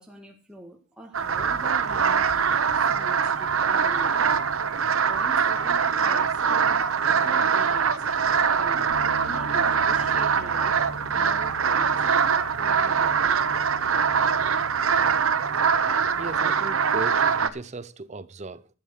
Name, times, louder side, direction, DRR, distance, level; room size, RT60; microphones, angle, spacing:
voice 1, 0.0-2.3 2.8-4.4 5.1-8.0 8.5-8.9 9.2-10.8 11.1-13.3, right 1 dB, 5° right, 1.7 m, -44 dB
sound 1, 1.1-17.5, right 6 dB, 80° right, 0.9 m, -23 dB
Bass guitar, 8.9-15.1, left 1 dB, 70° left, 2.9 m, -43 dB
voice 2, 16.2-18.7, right 3 dB, 35° right, 0.7 m, -36 dB
12.5 x 7.5 x 6.5 m
head